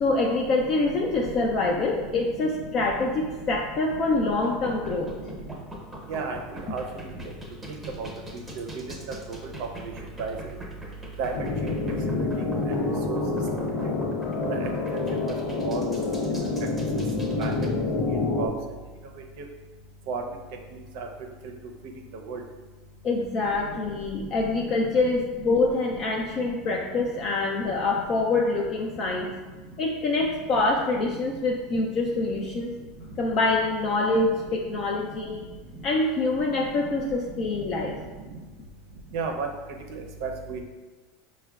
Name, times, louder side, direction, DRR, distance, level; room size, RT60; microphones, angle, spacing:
voice 1, 0.0-5.1 23.0-29.3 29.8-32.7 33.2-35.4 35.8-38.0, left 3 dB, 40° left, -1 dB, 0.4 m, -25 dB
sound 1, 4.2-17.7, right 1 dB, 5° right, 0.8 m, -41 dB
sound 2, 11.3-18.5, left 3 dB, 90° left, 0.9 m, -27 dB
voice 2, 39.1-39.5 40.2-40.6, right 5 dB, 65° right, 3 dB, 0.5 m, -30 dB
5.5 x 2.2 x 2.3 m, 1.3 s
supercardioid pair, 135°, 0 cm